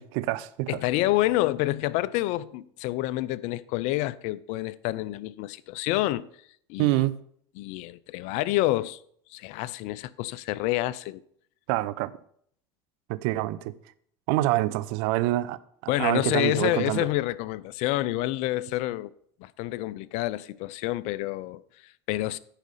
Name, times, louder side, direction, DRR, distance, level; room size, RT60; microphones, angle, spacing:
voice 1, 0.0-0.8 6.8-7.2 11.7-12.1 13.1-13.7 14.3-17.1, right 17 dB, 65° right, 0.6 m, -26 dB
voice 2, 0.7-6.3 6.7-7.1 7.6-9.0 9.3-11.2 15.9-19.1 19.4-22.4, left 17 dB, 60° left, 0.5 m, -28 dB
10.0 x 4.9 x 5.6 m
hypercardioid pair, 85°, 13 cm